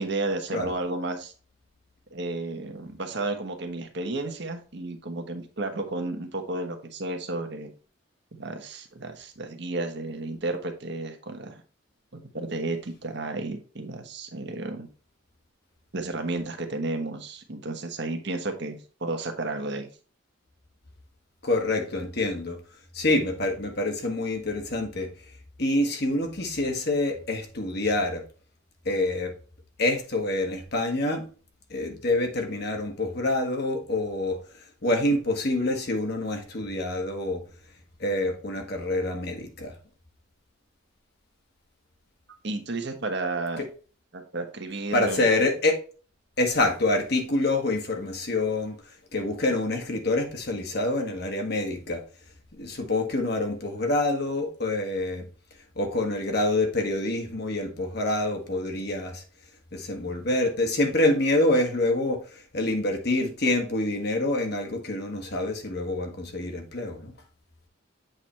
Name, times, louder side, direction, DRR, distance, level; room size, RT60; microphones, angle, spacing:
voice 1, 0.0-1.3 2.1-7.7 8.4-11.6 12.1-14.9 15.9-19.9 42.4-43.6 44.1-45.3, right 2 dB, 60° right, 1.1 m, -32 dB
voice 2, 21.4-22.6 22.9-25.1 25.6-28.2 28.8-29.4 29.8-31.3 31.7-34.4 34.8-37.4 38.0-39.8 44.9-45.8 46.4-48.8 49.1-52.0 52.6-55.3 55.7-59.2 59.7-67.1, left 2 dB, 50° left, 1.3 m, -26 dB
7.9 x 3.3 x 4.3 m
head